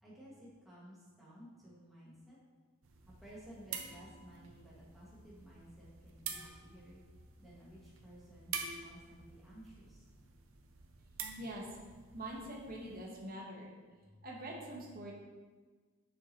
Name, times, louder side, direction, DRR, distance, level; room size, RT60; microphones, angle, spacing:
voice 1, 0.0-2.4 3.2-7.0 7.4-10.1, right 1 dB, ahead, -8 dB, 1.8 m, -55 dB
sound 1, 2.8-13.1, right 6 dB, 65° right, 0.7 m, -48 dB
voice 2, 12.1-13.7 14.2-15.1, right 1 dB, 40° right, -2 dB, 1.2 m, -44 dB
7.4 x 5.8 x 3.0 m, 1.4 s
head